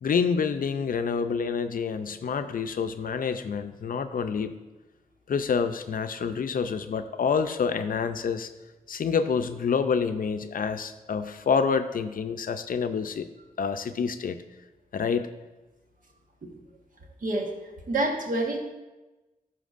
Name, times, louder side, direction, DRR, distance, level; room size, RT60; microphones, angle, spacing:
voice 1, 0.0-4.5 5.3-8.5 8.9-13.3 13.6-14.4 14.9-15.3, left 6 dB, 65° left, 9 dB, 0.5 m, -27 dB
voice 2, 17.9-18.6, right 2 dB, 60° right, 1 dB, 1.3 m, -27 dB
13.0 x 5.8 x 2.5 m, 1.1 s
wide cardioid pair, 75°, 15 cm